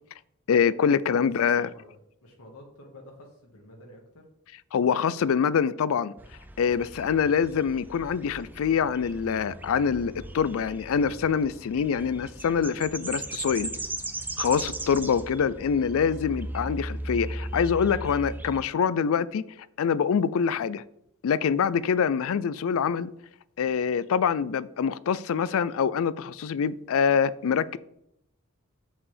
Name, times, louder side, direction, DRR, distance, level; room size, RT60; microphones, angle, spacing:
voice 1, 0.5-1.7 4.7-6.2 6.6-13.7 14.4-19.4 19.8-20.8 21.2-23.1 23.6-27.8, left 7 dB, 65° left, 0.4 m, -25 dB
voice 2, 1.4-4.2, left 1 dB, 85° left, 1.6 m, -50 dB
sound 1, 6.2-18.6, right 2 dB, 10° right, 0.5 m, -37 dB
7.5 x 7.1 x 3.4 m
head